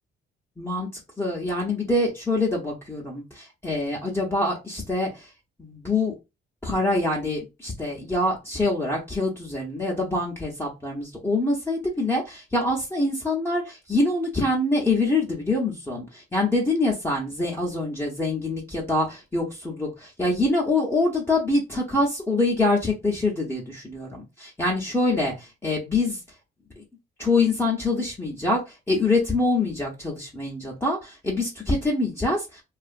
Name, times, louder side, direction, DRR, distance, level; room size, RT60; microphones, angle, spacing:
voice 1, 0.6-0.9 1.2-5.3 5.6-6.1 6.6-26.2 26.8-26.9 27.2-32.6, left 2 dB, 10° left, -3 dB, 0.8 m, -25 dB
2.7 x 2.5 x 2.5 m, 0.25 s
cardioid pair, 90°, 20 cm